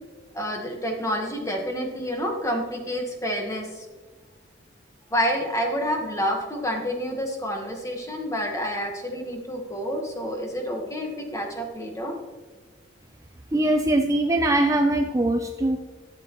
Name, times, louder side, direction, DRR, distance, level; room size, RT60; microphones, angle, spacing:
voice 1, 0.3-3.8 5.1-12.1, equal, 15° left, 2 dB, 1.3 m, -28 dB
voice 2, 13.5-15.8, right 1 dB, 15° right, 4 dB, 0.4 m, -22 dB
13.0 x 7.4 x 3.0 m, 1.4 s
head